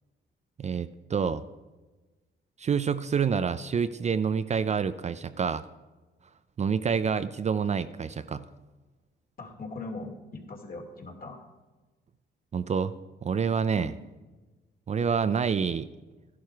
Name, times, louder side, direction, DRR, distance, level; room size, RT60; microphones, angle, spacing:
voice 1, 0.6-1.4 2.6-5.6 6.6-8.5 12.5-12.9 13.2-13.9 14.9-15.9, right 6 dB, 35° right, 12 dB, 0.5 m, -27 dB
voice 2, 9.4-11.4 13.7-13.9, left 3 dB, 45° left, 2 dB, 2.6 m, -40 dB
13.0 x 11.0 x 4.6 m, 1.2 s
cardioid pair, 90°, 20 cm